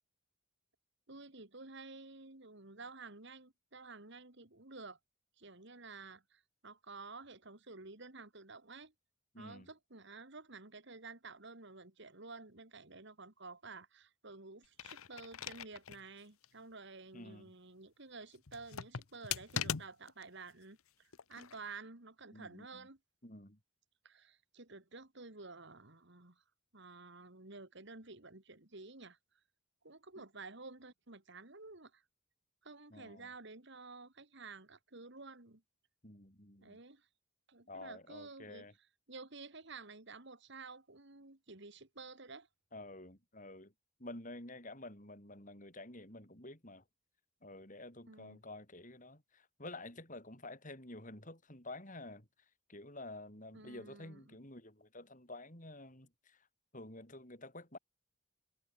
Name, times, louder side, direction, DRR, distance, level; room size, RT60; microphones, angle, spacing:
voice 1, 1.1-5.0 5.4-8.9 9.4-23.0 24.0-26.4 26.7-29.2 29.8-32.0 32.6-35.6 36.6-37.1 37.5-38.7 39.1-42.5 48.1-48.4 53.5-54.4, right 3 dB, 55° right, 2.4 m, -52 dB
voice 2, 9.3-9.7 17.1-17.5 22.3-22.9 23.2-23.6 30.2-30.3 32.9-33.3 36.0-36.8 37.7-38.7 42.7-43.7 44.0-46.8 47.4-56.5 56.7-57.8, left 2 dB, 40° left, 7.6 m, -50 dB
sound 1, 14.6-16.0 16.4-16.5 18.5-20.2 21.1-21.6, left 8 dB, 85° left, 1.0 m, -41 dB
head